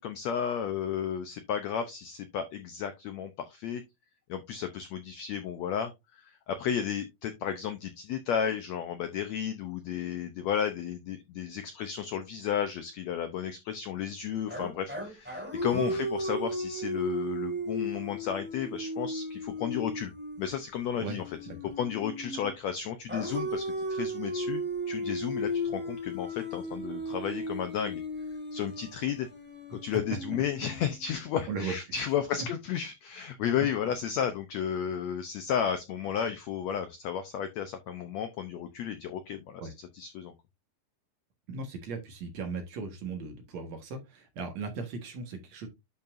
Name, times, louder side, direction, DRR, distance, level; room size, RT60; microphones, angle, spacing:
voice 1, 0.0-3.8 4.3-20.1 20.4-21.2 21.8-28.0 28.5-29.3 29.7-39.6 39.9-40.3, left 8 dB, 85° left, 8 dB, 1.5 m, -33 dB
sound 1, 14.5-22.5 23.1-31.2, equal, 5° right, 1.7 m, -35 dB
voice 2, 31.5-32.0 32.4-32.5 39.6-39.7 41.5-45.7, right 4 dB, 55° right, 5 dB, 2.4 m, -37 dB
11.0 x 5.5 x 2.6 m, 0.21 s
omnidirectional pair, 4.1 m